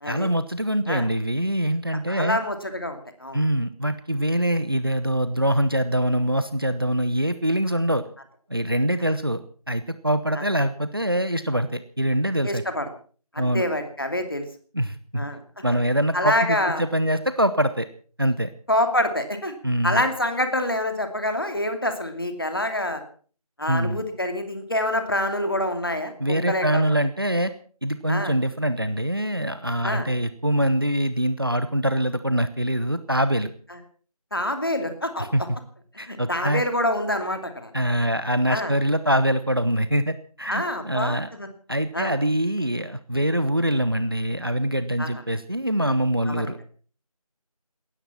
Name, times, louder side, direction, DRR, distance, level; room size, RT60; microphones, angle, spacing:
voice 1, 0.0-2.4 3.3-8.0 8.5-12.6 13.4-13.6 14.7-15.3 15.6-17.9 18.2-18.5 19.6-20.0 23.7-24.0 26.2-27.5 27.8-33.5 35.2-35.4 36.0-36.6 37.7-41.3 41.7-46.6, right 1 dB, 40° right, 13 dB, 0.9 m, -24 dB
voice 2, 2.1-3.4 10.3-10.4 12.4-12.9 13.3-14.5 15.2-15.4 16.1-16.8 18.7-19.5 19.8-23.0 23.6-26.8 28.1-28.3 29.8-30.1 34.3-35.3 36.1-37.7 38.5-38.7 40.5-41.5 41.9-42.1 45.0-45.1 46.3-46.5, left 1 dB, 35° left, 7 dB, 2.6 m, -26 dB
18.0 x 13.5 x 5.9 m, 0.43 s
figure-of-eight pair, 175°, 19 cm